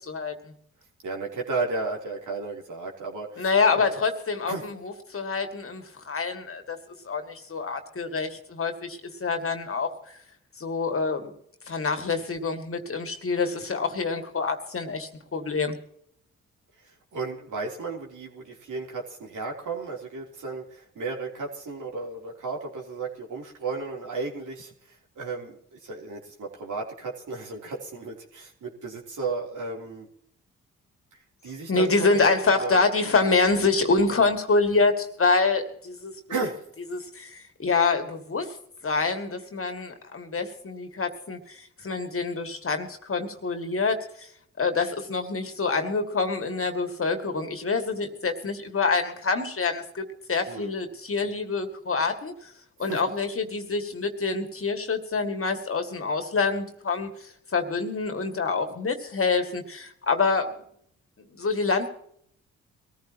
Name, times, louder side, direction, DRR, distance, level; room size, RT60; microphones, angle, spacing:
voice 1, 0.0-0.3 3.4-6.8 7.0-10.2 10.6-11.3 11.7-15.8 31.7-36.1 36.9-38.6 38.8-44.3 44.6-52.5 52.8-60.5 61.3-61.9, left 4 dB, 40° left, 6 dB, 2.2 m, -26 dB
voice 2, 1.0-3.9 4.5-4.6 17.1-30.1 31.4-32.8 33.2-33.3 33.9-34.0 36.3-36.6 50.5-50.8 52.8-53.0, right 3 dB, 65° right, -1 dB, 3.5 m, -34 dB
22.0 x 14.5 x 3.0 m, 0.68 s
supercardioid pair, 50°, 32 cm